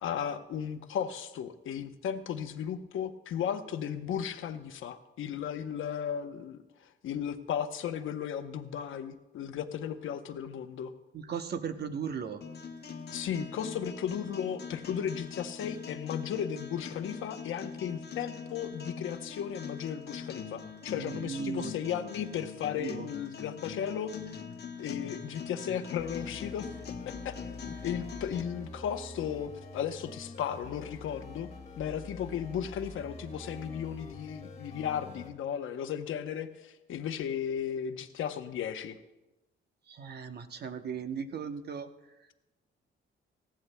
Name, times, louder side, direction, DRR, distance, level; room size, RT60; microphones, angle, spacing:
voice 1, 0.0-10.9 13.1-24.1 24.8-26.7 27.2-31.5 31.8-39.0, left 8 dB, 80° left, 8 dB, 0.9 m, -35 dB
voice 2, 11.1-12.4 20.9-21.7 22.7-23.1 39.9-41.9, right 6 dB, 55° right, 8 dB, 0.9 m, -37 dB
sound 1, 12.4-28.4, left 6 dB, 55° left, 1.0 m, -42 dB
sound 2, 26.0-35.3, left 2 dB, 30° left, 1.6 m, -46 dB
18.5 x 15.0 x 2.2 m, 1.0 s
cardioid pair, 95°, 20 cm